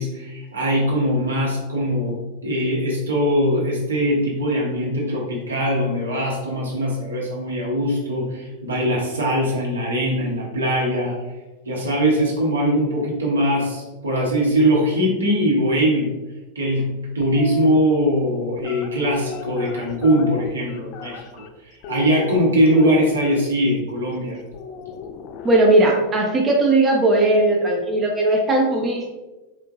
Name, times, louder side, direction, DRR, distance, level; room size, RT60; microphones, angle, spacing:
voice 1, 0.0-2.1 2.4-11.1 11.6-16.1 16.5-21.4 21.9-24.4, equal, 75° right, -3 dB, 1.1 m, -21 dB
sound 1, 17.2-17.8 18.6-21.5 21.8-23.3 24.5-25.9, left 6 dB, 40° left, 0.3 m, -34 dB
voice 2, 25.4-29.1, right 2 dB, 20° right, -1 dB, 0.6 m, -18 dB
4.3 x 3.5 x 2.5 m, 1.1 s
figure-of-eight pair, 90°, 0 cm